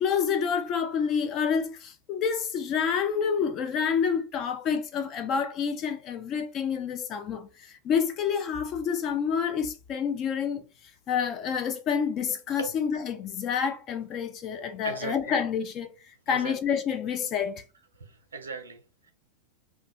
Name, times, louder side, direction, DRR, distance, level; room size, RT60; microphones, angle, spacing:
voice 1, 0.0-10.6 11.1-15.9 16.3-17.6, left 7 dB, 35° left, 0.3 m, -28 dB
voice 2, 14.8-15.3 16.3-16.5 18.0-19.1, right 4 dB, 75° right, 0.5 m, -38 dB
2.3 x 2.1 x 2.8 m
figure-of-eight pair, 90°, 0 cm